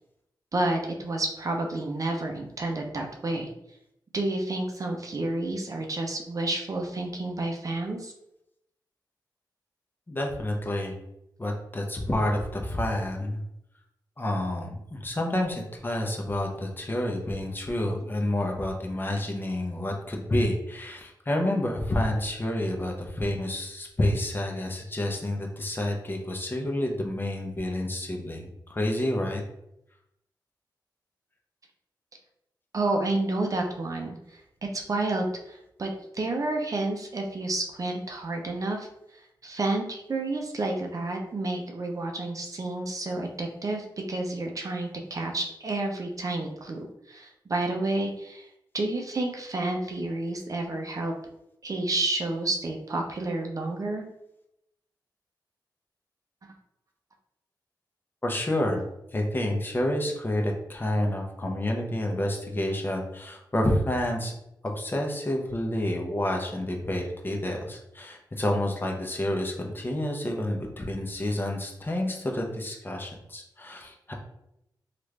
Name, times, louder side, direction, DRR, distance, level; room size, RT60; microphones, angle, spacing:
voice 1, 0.5-3.5 4.1-8.1 32.7-34.2 34.7-38.9 39.4-48.5 48.7-51.1 51.6-54.0, right 2 dB, 45° right, 2 dB, 0.6 m, -30 dB
voice 2, 10.1-11.0 11.4-13.4 14.2-29.4 58.2-58.8 59.1-64.3 64.6-74.1, left 1 dB, 25° left, 0 dB, 0.7 m, -29 dB
3.1 x 2.5 x 3.2 m, 0.82 s
cardioid pair, 70°, 8 cm